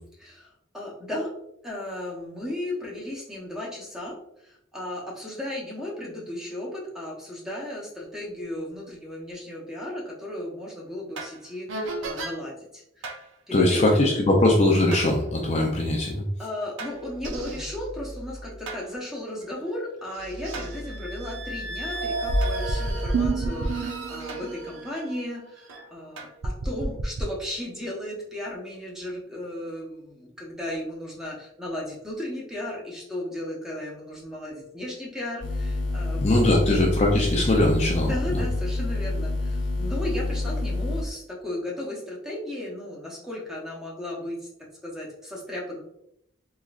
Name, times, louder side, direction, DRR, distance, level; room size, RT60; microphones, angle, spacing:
voice 1, 0.2-1.3 1.6-4.2 4.4-13.1 13.5-14.0 16.4-36.6 38.0-45.8, left 1 dB, 5° right, -4 dB, 0.8 m, -35 dB
sound 1, 11.2-11.4 11.7-12.4 13.0-13.2 14.9-15.1 16.8-18.8 19.4-19.5 20.1-25.9 26.2-27.3, right 2 dB, 75° right, 0.5 m, -30 dB
voice 2, 13.5-16.2 36.2-38.4, left 1 dB, 35° left, -1 dB, 0.5 m, -21 dB
sound 2, 35.4-41.0, left 2 dB, 70° left, 0.9 m, -28 dB
3.7 x 3.0 x 2.4 m, 0.75 s
head